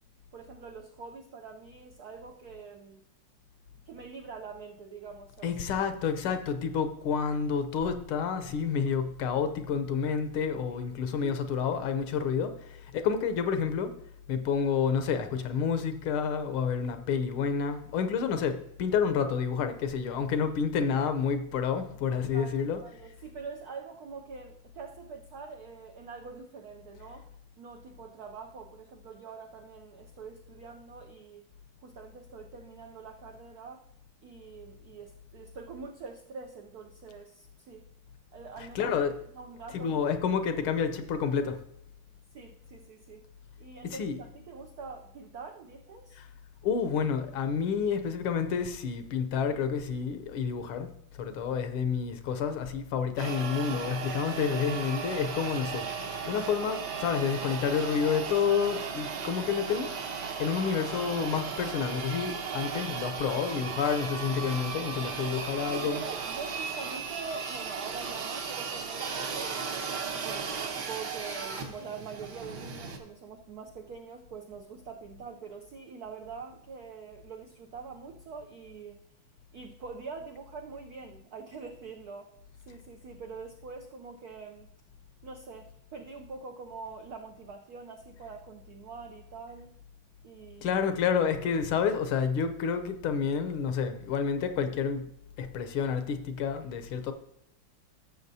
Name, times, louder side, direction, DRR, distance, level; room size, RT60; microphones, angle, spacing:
voice 1, 0.3-3.0 3.9-5.6 10.7-10.8 11.2-11.4 22.3-27.3 27.6-31.5 31.8-33.8 34.2-37.9 38.3-39.0 39.3-40.0 42.3-43.3 43.6-46.2 65.2-65.4 65.7-69.8 70.2-79.0 79.5-82.3 82.6-84.7 85.2-89.7 90.2-90.8, right 5 dB, 75° right, 0.8 m, -44 dB
voice 2, 5.4-13.9 14.3-22.8 38.7-39.1 39.7-41.6 43.8-44.2 46.6-50.9 51.2-55.9 56.2-59.9 60.4-66.0 90.6-95.0 95.4-97.1, left 6 dB, 75° left, 1.6 m, -29 dB
sound 1, 53.2-73.0, right 6 dB, 55° right, 1.5 m, -36 dB
14.5 x 7.0 x 2.7 m
omnidirectional pair, 2.4 m